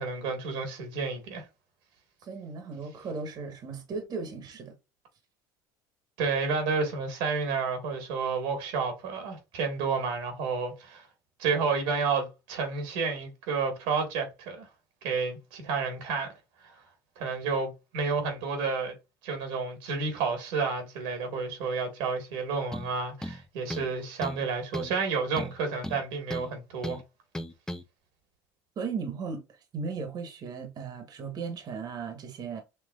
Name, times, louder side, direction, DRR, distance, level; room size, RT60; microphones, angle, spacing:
voice 1, 0.0-1.4 6.2-11.1 11.4-14.7 15.0-16.3 17.2-18.9 19.2-27.0, right 5 dB, 80° right, 1.7 m, -30 dB
voice 2, 2.2-4.7 28.8-32.6, right 5 dB, 45° right, 1.2 m, -36 dB
sound 1, 22.7-22.9 23.2-23.9 24.2-24.4 24.7-25.0 25.4-26.5 26.8-27.0 27.3-27.8, left 1 dB, 5° left, 0.6 m, -36 dB
5.5 x 3.0 x 2.4 m
supercardioid pair, 85°, 9 cm